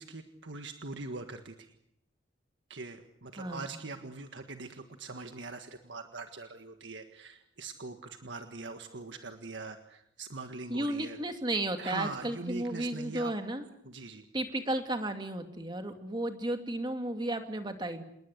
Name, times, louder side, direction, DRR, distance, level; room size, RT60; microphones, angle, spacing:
voice 1, 0.0-1.7 2.7-11.2 11.8-13.3 13.8-14.2, right 3 dB, 70° right, 6 dB, 1.7 m, -42 dB
voice 2, 3.4-3.7 10.7-13.7 14.3-18.0, right 1 dB, 25° right, 6 dB, 2.6 m, -33 dB
27.5 x 21.0 x 8.3 m, 0.74 s
head